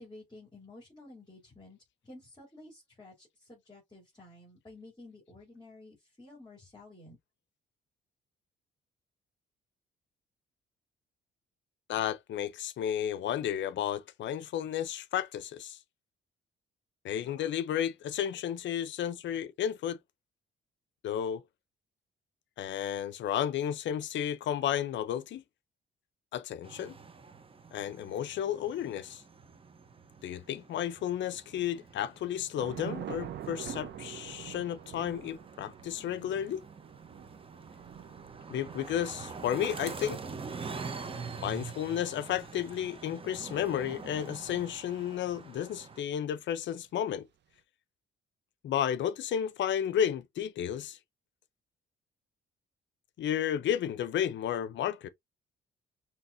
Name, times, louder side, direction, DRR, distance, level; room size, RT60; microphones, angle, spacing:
voice 1, 0.0-1.8 2.0-7.2, left 2 dB, 20° left, 3.2 m, -52 dB
voice 2, 11.9-15.8 17.0-20.0 21.0-21.4 22.6-25.4 26.3-27.0 27.7-29.2 30.2-36.6 38.5-40.2 41.4-47.2 48.6-51.0 53.2-55.1, left 10 dB, 70° left, 0.6 m, -32 dB
sound 1, 26.6-46.0, right 5 dB, 25° right, 0.8 m, -45 dB
Thunder / Rain, 32.6-45.1, right 10 dB, 60° right, 0.8 m, -47 dB
5.8 x 2.9 x 2.6 m
cardioid pair, 90°, 20 cm